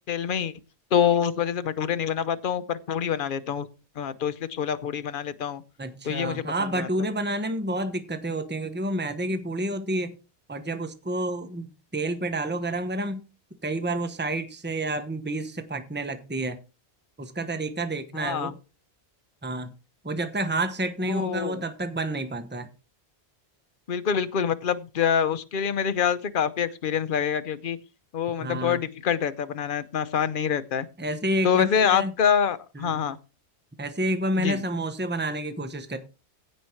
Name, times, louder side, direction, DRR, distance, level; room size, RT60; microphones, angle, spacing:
voice 1, 0.1-0.5 0.9-3.7 4.0-5.6 6.0-6.4 6.8-6.9 18.1-18.5 21.1-21.6 23.9-27.8 28.1-30.9 31.4-33.2 34.4-34.6, left 8 dB, 50° left, 1.0 m, -26 dB
voice 2, 5.8-10.2 10.5-13.2 13.6-16.6 17.2-18.5 19.4-19.7 20.0-22.7 28.4-28.8 31.0-32.1 32.7-33.0 33.8-36.0, right 1 dB, 10° right, 1.0 m, -29 dB
16.0 x 5.4 x 4.5 m
omnidirectional pair, 1.1 m